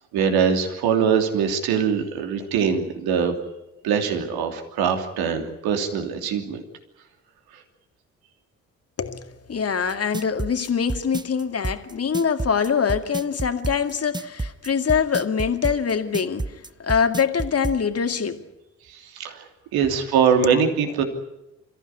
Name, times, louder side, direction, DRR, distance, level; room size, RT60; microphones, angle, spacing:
voice 1, 0.1-3.3 3.8-6.6 7.5-7.6 18.9-21.0, right 7 dB, 65° right, 3.0 m, -22 dB
voice 2, 9.0-18.4 20.4-20.6, left 6 dB, 40° left, 2.2 m, -24 dB
sound 1, 9.9-17.8, right 2 dB, 10° right, 0.8 m, -29 dB
28.5 x 15.0 x 9.8 m
figure-of-eight pair, 45°, 39 cm